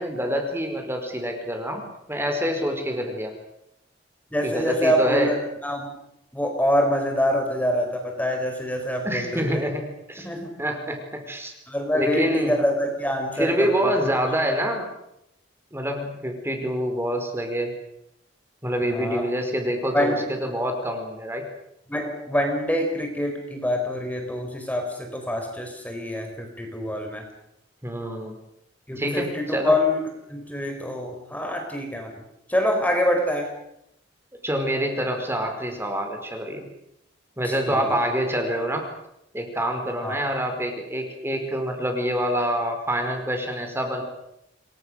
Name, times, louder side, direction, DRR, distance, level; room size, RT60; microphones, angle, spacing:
voice 1, 0.0-3.3 4.4-5.3 9.0-10.3 10.6-11.5 11.9-12.5 13.4-14.9 15.7-17.7 18.6-21.4 27.8-28.4 29.0-29.7 34.4-36.7 37.4-38.9 39.3-44.0, equal, 15° right, 4 dB, 4.9 m, -26 dB
voice 2, 4.3-5.3 5.6-5.9 6.3-9.4 10.2-10.5 11.7-13.9 18.9-19.2 19.9-20.3 21.9-27.3 28.9-30.0 30.3-32.1 32.5-33.5 37.4-37.9 40.0-40.2, left 1 dB, 10° left, 3 dB, 4.4 m, -25 dB
28.5 x 23.0 x 6.6 m, 0.81 s
head